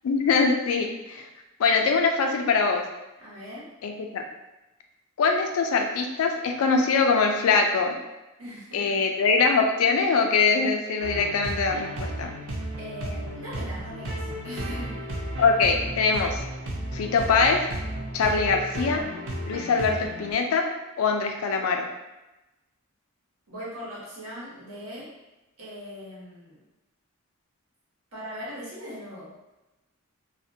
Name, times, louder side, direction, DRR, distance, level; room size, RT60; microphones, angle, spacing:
voice 1, 0.0-1.3 1.6-2.9 3.8-4.2 5.2-8.0 8.7-12.3 15.4-16.4 16.9-17.7 18.1-19.0 19.5-20.7 21.0-21.9, left 4 dB, 85° left, 3 dB, 0.4 m, -23 dB
voice 2, 3.2-3.7 8.4-9.1 12.8-15.0 23.5-25.1 25.6-26.6 28.1-29.3, equal, 90° right, -7 dB, 1.0 m, -40 dB
sound 1, 11.0-20.3, right 1 dB, 60° right, 0.5 m, -34 dB
2.4 x 2.1 x 2.6 m, 1.0 s
head